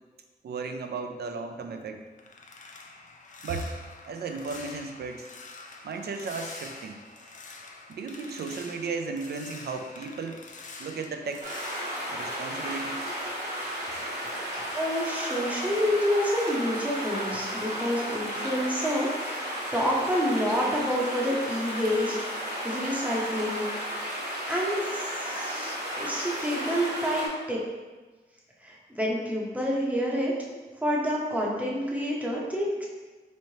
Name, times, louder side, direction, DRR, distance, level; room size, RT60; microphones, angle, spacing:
voice 1, 0.4-2.0 3.4-3.8 4.1-5.3 5.8-7.0 7.9-10.4 10.8-11.6 12.1-13.1, right 4 dB, 70° right, 5 dB, 0.4 m, -35 dB
sound 1, 1.8-13.3 13.6-16.3 16.6-16.9 17.3-17.6, left 3 dB, 45° left, 0.4 m, -47 dB
sound 2, 11.4-27.3, equal, 45° right, 1.2 m, -33 dB
voice 2, 14.8-19.5 19.7-22.2 22.6-24.1 24.5-27.6 28.6-30.3 30.8-32.9, equal, 10° right, -4 dB, 0.6 m, -28 dB
4.2 x 3.1 x 2.7 m, 1.3 s
wide cardioid pair, 160°, 18 cm